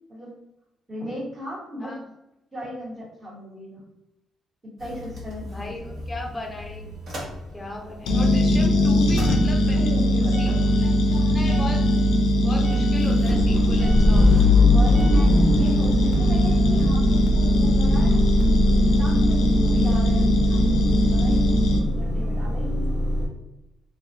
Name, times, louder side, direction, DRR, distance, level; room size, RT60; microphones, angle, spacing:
voice 1, 0.9-2.0 2.5-3.8 4.6-6.0 9.7-10.7 14.5-18.3 18.8-22.9, equal, 20° right, -8 dB, 1.4 m, -35 dB
Motor vehicle (road) / Engine starting / Idling, 4.8-8.0 8.3-23.3, left 2 dB, 55° right, 0.9 m, -24 dB
voice 2, 5.5-6.9 7.5-10.0 10.4-10.5 10.8-11.8 12.4-14.5, left 2 dB, 20° left, 2 dB, 0.6 m, -35 dB
sound 1, 8.1-21.8, equal, 80° left, 0.4 m, -20 dB
2.6 x 2.1 x 2.9 m, 0.88 s
cardioid pair, 90°, 0 cm